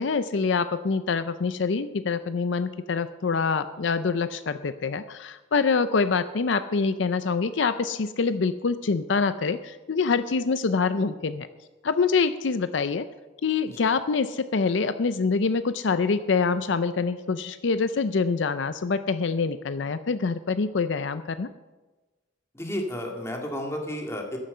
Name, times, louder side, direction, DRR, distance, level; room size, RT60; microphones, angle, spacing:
voice 1, 0.0-11.5 11.8-13.0 13.4-21.5, left 4 dB, 70° left, 12 dB, 0.5 m, -25 dB
voice 2, 22.5-24.4, left 1 dB, 15° left, 1 dB, 2.1 m, -32 dB
14.0 x 10.5 x 5.5 m, 1.2 s
head